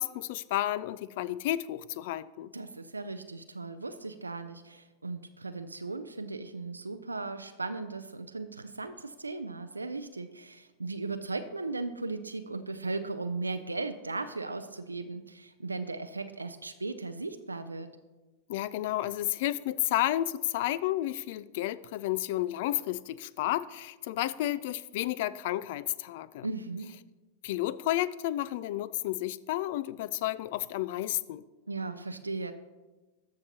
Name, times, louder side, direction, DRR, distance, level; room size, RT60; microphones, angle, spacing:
voice 1, 0.0-2.5 18.5-26.5 27.4-31.4, left 14 dB, 55° left, 18 dB, 0.3 m, -31 dB
voice 2, 2.5-17.9 26.4-27.0 31.7-32.5, right 3 dB, 85° right, 9 dB, 0.4 m, -37 dB
13.5 x 5.7 x 2.8 m, 1.2 s
figure-of-eight pair, 90°, 0 cm